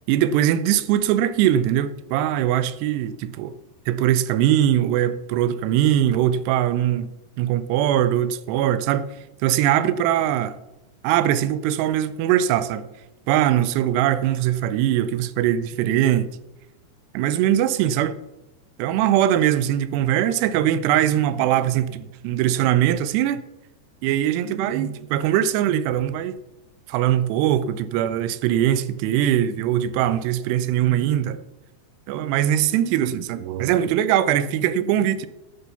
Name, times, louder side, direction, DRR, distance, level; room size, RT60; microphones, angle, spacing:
voice 1, 0.1-3.5 3.9-7.1 7.4-9.1 9.4-10.6 11.0-12.9 13.3-16.3 17.1-18.2 18.8-23.4 24.0-26.4 26.9-31.4 32.1-35.3, right 11 dB, 85° right, 2.8 m, -21 dB
11.5 x 6.9 x 6.9 m
omnidirectional pair, 4.8 m